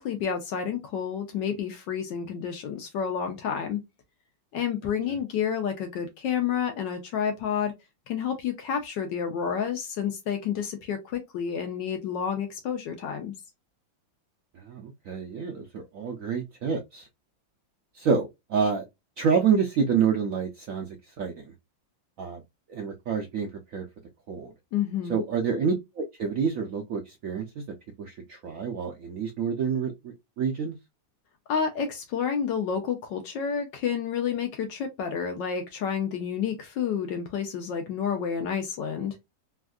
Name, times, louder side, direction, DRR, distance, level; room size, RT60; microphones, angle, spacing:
voice 1, 0.0-3.8 4.5-7.7 8.1-13.3 24.7-25.2 31.5-39.2, left 7 dB, 75° left, 1.3 m, -30 dB
voice 2, 14.6-17.1 17.9-18.8 19.2-20.9 21.2-21.4 22.2-22.4 22.7-23.8 24.3-24.5 25.1-27.6 28.0-30.8, right 6 dB, 80° right, 0.7 m, -28 dB
3.4 x 2.3 x 2.3 m
omnidirectional pair, 2.0 m